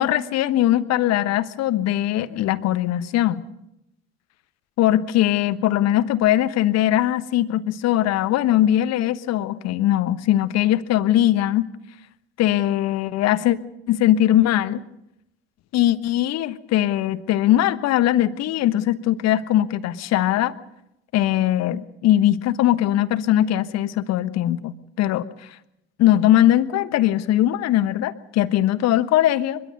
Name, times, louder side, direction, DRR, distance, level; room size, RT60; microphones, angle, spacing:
voice 1, 0.0-3.4 4.8-11.7 12.4-13.6 13.9-14.8 15.7-20.5 21.1-25.3 26.0-29.6, left 13 dB, 55° left, 13 dB, 1.2 m, -20 dB
24.0 x 22.5 x 5.3 m, 0.82 s
figure-of-eight pair, 55°, 32 cm